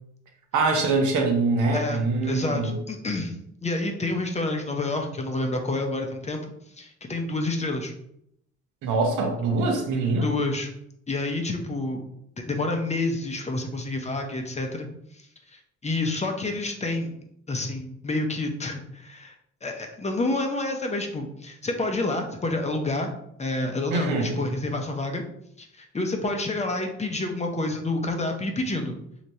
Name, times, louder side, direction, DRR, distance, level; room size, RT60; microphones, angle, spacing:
voice 1, 0.5-2.8 8.8-10.3 23.9-24.4, right 3 dB, 80° right, 3 dB, 0.8 m, -24 dB
voice 2, 1.7-6.4 6.8-7.9 10.0-10.7 11.1-12.0 12.4-14.9 15.1-15.2 15.5-17.2 17.5-19.3 19.6-23.1 23.4-25.2 25.6-29.0, left 2 dB, 25° left, 3 dB, 0.6 m, -28 dB
3.2 x 2.9 x 2.7 m, 0.73 s
cardioid pair, 90°, 30 cm